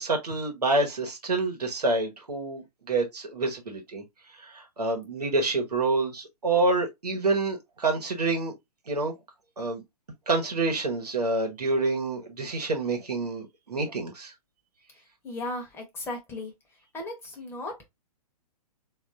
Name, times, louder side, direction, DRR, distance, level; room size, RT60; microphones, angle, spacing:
voice 1, 0.0-4.0 4.4-8.5 8.9-9.1 9.6-9.8 10.3-14.3, right 3 dB, 85° right, 1.1 m, -27 dB
voice 2, 15.2-16.5 16.9-17.9, left 2 dB, 10° left, 0.8 m, -36 dB
3.4 x 2.5 x 2.5 m
figure-of-eight pair, 125°, 20 cm